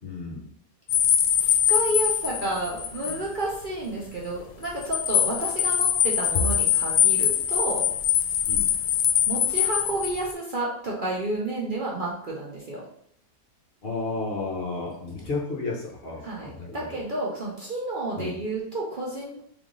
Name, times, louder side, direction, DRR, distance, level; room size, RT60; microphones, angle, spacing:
voice 1, 0.0-0.5 6.3-6.4 8.5-8.8 13.8-16.8 18.2-18.3, left 3 dB, 55° left, -1 dB, 0.7 m, -32 dB
sound 1, 0.9-3.2 3.5-3.6 4.6-10.3, left 10 dB, 80° left, 1.1 m, -23 dB
voice 2, 1.4-7.9 9.3-12.9 16.2-19.4, right 2 dB, 55° right, -4 dB, 0.5 m, -31 dB
3.5 x 3.4 x 3.7 m, 0.69 s
omnidirectional pair, 1.8 m